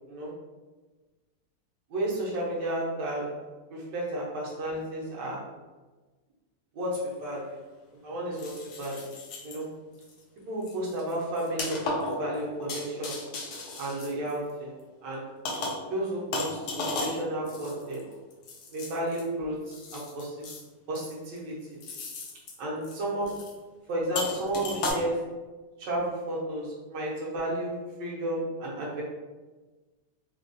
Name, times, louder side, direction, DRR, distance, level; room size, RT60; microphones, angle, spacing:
voice 1, 0.1-0.4 1.9-3.4 3.7-5.5 6.7-7.6 7.9-9.1 9.4-9.8 10.4-13.2 13.8-14.7 15.0-15.3 15.9-18.1 18.7-20.4 20.9-21.8 22.6-23.5 23.9-25.4 25.8-29.0, right 1 dB, 75° right, -5 dB, 1.5 m, -32 dB
sound 1, 6.8-6.9 8.3-9.6 10.0-10.2 10.6-14.8 15.5-15.9 16.3-19.2 19.7-20.6 21.0-21.4 21.8-22.6 22.8-23.0 23.3-23.5 24.2-24.9, left 2 dB, 70° left, 1.1 m, -35 dB
3.9 x 2.3 x 2.5 m, 1.2 s
omnidirectional pair, 1.9 m